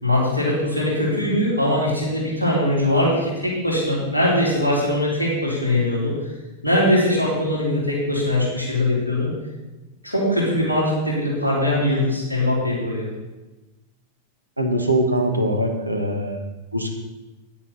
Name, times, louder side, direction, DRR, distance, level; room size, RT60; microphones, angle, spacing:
voice 1, 0.0-6.1 6.6-9.3 10.0-13.1, left 1 dB, 85° left, -5 dB, 3.6 m, -21 dB
voice 2, 14.6-16.4 16.7-16.9, right 1 dB, 85° right, 4 dB, 1.4 m, -22 dB
10.0 x 8.5 x 4.1 m, 1.1 s
figure-of-eight pair, 90°, 0 cm